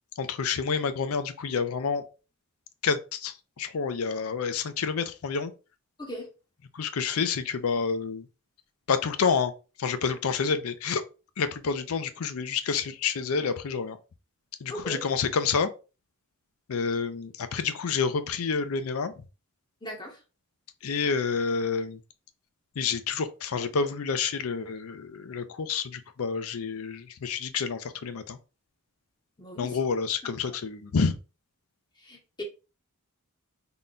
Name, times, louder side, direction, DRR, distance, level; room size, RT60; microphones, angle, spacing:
voice 1, 0.2-2.0 2.8-5.5 6.7-8.2 8.9-9.5 9.8-11.0 11.4-14.0 14.6-15.7 16.7-19.1 20.8-22.0 22.8-28.4 29.6-31.2, left 5 dB, 65° left, 0.5 m, -28 dB
voice 2, 19.8-20.2 29.4-29.8 30.5-30.6 32.0-32.4, equal, 20° left, 0.9 m, -38 dB
3.8 x 2.2 x 3.8 m
head